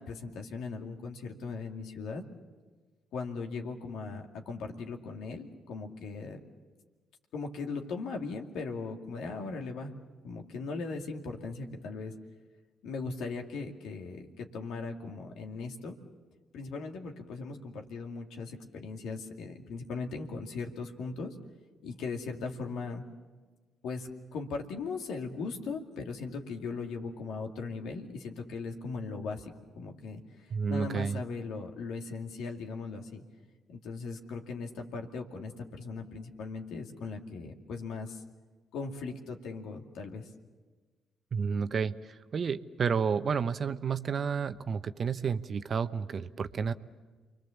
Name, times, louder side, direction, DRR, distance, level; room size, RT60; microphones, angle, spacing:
voice 1, 0.0-2.2 3.1-6.4 7.3-9.9 10.2-12.1 12.8-15.9 16.5-21.4 21.8-23.0 23.8-33.2 33.7-38.2 38.7-40.3, left 4 dB, 70° left, 3 dB, 2.3 m, -38 dB
voice 2, 30.5-31.2 41.3-46.7, right 6 dB, 50° right, 11 dB, 0.9 m, -31 dB
28.5 x 22.5 x 7.2 m, 1.4 s
hypercardioid pair, 50°, 0 cm